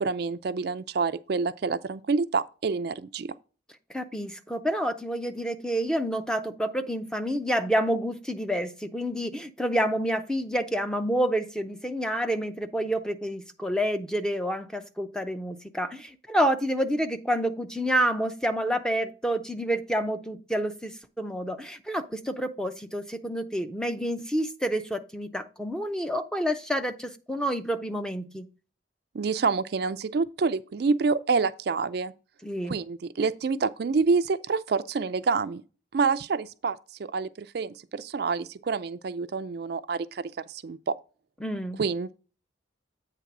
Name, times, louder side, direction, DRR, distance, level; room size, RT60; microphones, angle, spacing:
voice 1, 0.0-3.3 29.1-32.1 32.6-35.6 35.9-41.0 41.8-42.1, right 4 dB, 55° right, 0.4 m, -27 dB
voice 2, 3.9-28.5 32.4-32.8 41.4-41.8, equal, 5° left, 0.5 m, -28 dB
8.4 x 3.3 x 5.9 m
head